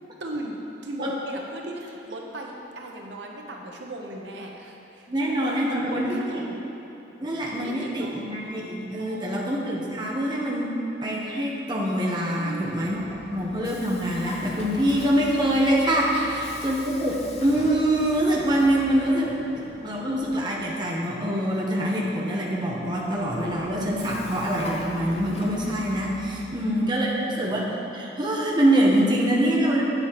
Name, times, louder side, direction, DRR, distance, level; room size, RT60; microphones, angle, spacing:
voice 1, 0.2-6.7 7.4-8.2 9.0-9.5 12.3-12.9 16.1-16.4 26.4-26.7, right 1 dB, 75° right, 0 dB, 0.8 m, -37 dB
voice 2, 5.1-6.2 7.2-10.7 11.0-13.0 13.3-19.3 19.5-27.7 27.9-29.8, right 1 dB, 25° right, -3 dB, 0.9 m, -24 dB
Vehicle, 12.5-21.0 22.7-26.6, left 2 dB, 35° left, 0.6 m, -42 dB
9.0 x 7.9 x 3.0 m, 3.0 s
head